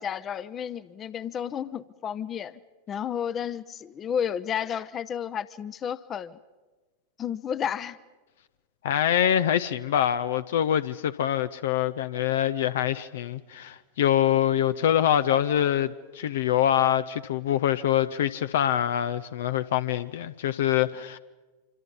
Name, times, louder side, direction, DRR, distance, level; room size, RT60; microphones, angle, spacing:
voice 1, 0.0-2.6 2.9-6.4 7.2-8.0, left 8 dB, 25° left, 0.8 m, -32 dB
voice 2, 8.8-21.2, left 10 dB, 60° left, 0.6 m, -25 dB
26.5 x 26.0 x 5.4 m
figure-of-eight pair, 90°, 0 cm